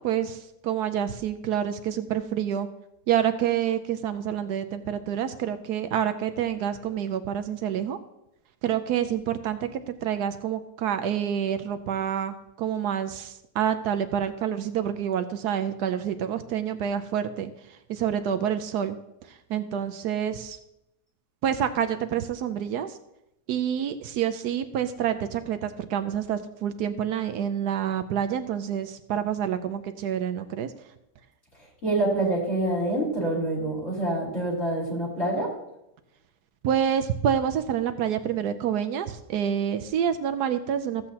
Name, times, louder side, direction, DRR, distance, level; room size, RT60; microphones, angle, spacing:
voice 1, 0.0-2.7 3.1-8.0 8.6-17.5 17.9-19.0 19.3-20.6 21.4-22.9 23.5-30.7 36.6-41.1, right 9 dB, 70° right, 9 dB, 1.1 m, -28 dB
voice 2, 31.8-35.5, right 1 dB, 45° left, -5 dB, 3.5 m, -26 dB
14.5 x 8.0 x 2.8 m, 0.85 s
omnidirectional pair, 1.9 m